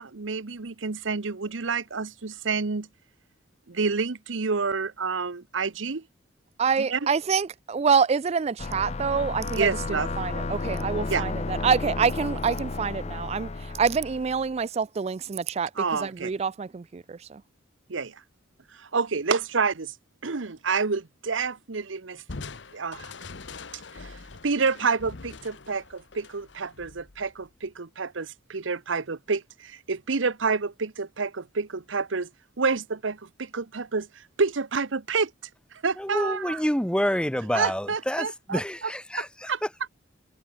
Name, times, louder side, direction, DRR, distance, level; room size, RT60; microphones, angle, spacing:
voice 1, 0.0-2.9 3.7-6.0 6.8-7.1 9.5-10.1 11.1-11.2 15.8-16.3 17.9-18.1 18.7-19.9 20.2-22.4 22.7-23.1 23.9-24.2 24.4-32.3 32.6-35.3 35.8-36.6 37.5-38.6 39.5-39.6, right 4 dB, 80° right, 0.9 m, -28 dB
voice 2, 6.6-17.4, right 6 dB, 35° right, 0.3 m, -26 dB
sound 1, 8.6-14.5, left 3 dB, 35° left, 0.6 m, -32 dB
Crushing, 22.3-27.7, left 4 dB, 65° left, 1.0 m, -43 dB
voice 3, 36.0-39.7, equal, 5° left, 2.1 m, -28 dB
head